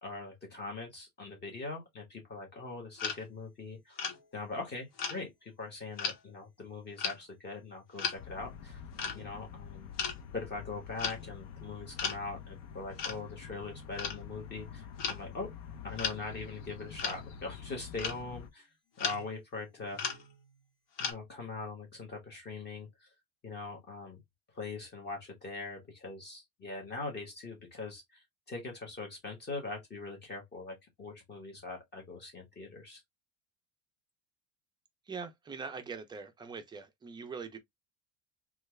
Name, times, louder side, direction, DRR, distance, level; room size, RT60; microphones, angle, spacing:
voice 1, 0.0-4.0 4.3-8.8 9.1-9.9 10.3-15.5 15.8-18.7 19.0-20.0 21.0-23.1 23.4-24.2 24.5-33.0, left 3 dB, 30° left, 1.3 m, -42 dB
sound 1, 3.0-3.2 4.0-4.2 5.0-5.2 6.0-6.2 7.0-7.2 8.0-8.2 9.0-9.2 10.0-10.2 11.0-11.2 12.0-12.2 13.0-13.2 14.0-14.2 15.0-15.2 16.0-16.2 17.0-17.2 18.0-18.2 19.0-19.3 19.8-20.5 21.0-21.1, left 6 dB, 60° left, 1.4 m, -35 dB
sound 2, 8.2-18.5, left 7 dB, 75° left, 0.8 m, -47 dB
voice 2, 35.1-37.6, right 5 dB, 15° right, 0.3 m, -42 dB
3.2 x 2.4 x 3.1 m
cardioid pair, 145°, 37 cm